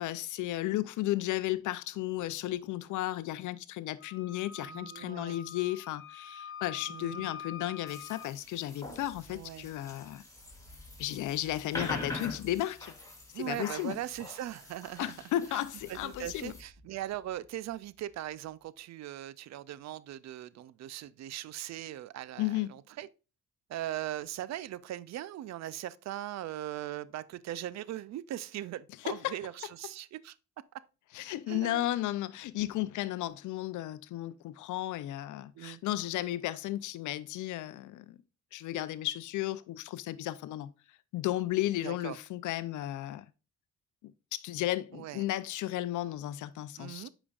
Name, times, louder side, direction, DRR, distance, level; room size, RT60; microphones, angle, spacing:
voice 1, 0.0-10.2 11.0-12.9 13.4-14.0 15.0-16.5 22.4-22.7 29.1-29.3 31.1-38.2 38.5-40.7 41.1-43.2 44.0-47.1, left 14 dB, 80° left, 0.5 m, -34 dB
Wind instrument woodwind instrument, 4.0-8.3, left 7 dB, 45° left, 1.0 m, -46 dB
voice 2, 4.6-5.4 6.9-7.3 9.3-9.7 13.3-15.1 15.5-15.6 15.9-23.1 23.7-30.3 31.5-31.8 35.5-35.8 41.8-42.2 44.9-45.3 46.8-47.1, right 13 dB, 60° right, 0.4 m, -40 dB
sound 1, 7.9-16.6, left 2 dB, 10° left, 2.3 m, -44 dB
sound 2, 8.9-15.1 15.6-18.8, left 2 dB, 25° right, 2.7 m, -59 dB
8.5 x 5.1 x 2.4 m
cardioid pair, 90°, 30 cm